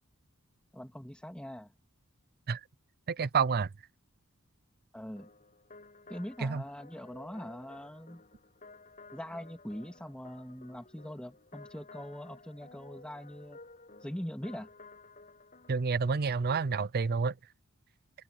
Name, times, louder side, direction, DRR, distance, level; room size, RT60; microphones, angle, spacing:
voice 1, 0.7-1.7 4.9-5.3 6.1-8.2 9.1-13.6 14.0-14.7, equal, 5° left, 2.3 m, -42 dB
voice 2, 3.1-3.7 6.4-6.6 15.7-17.3, right 5 dB, 45° right, 0.5 m, -29 dB
sound 1, 5.2-16.8, left 3 dB, 40° left, 7.1 m, -54 dB
head